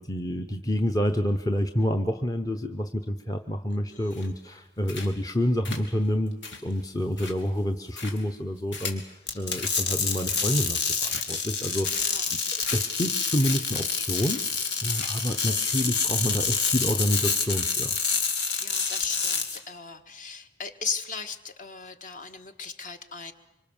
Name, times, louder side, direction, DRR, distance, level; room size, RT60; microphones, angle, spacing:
voice 1, 0.0-12.4 12.7-14.4 14.8-18.0, equal, 20° left, 5 dB, 0.8 m, -28 dB
voice 2, 3.8-4.3 11.9-12.4 18.5-23.3, left 5 dB, 45° left, 7 dB, 1.5 m, -37 dB
sound 1, 4.1-4.5 4.9-5.3 5.6-9.1 9.5-9.8 10.1-10.7 11.0-11.5 11.8-12.3 12.6-12.8 13.1-13.2 13.4-13.6 13.8-13.9 14.2-14.7 14.9-15.3 15.7-15.9, left 4 dB, 80° left, 3.3 m, -40 dB
sound 2, 9.3-19.6, left 5 dB, 65° left, 2.9 m, -27 dB
25.5 x 25.0 x 7.2 m, 1.0 s
head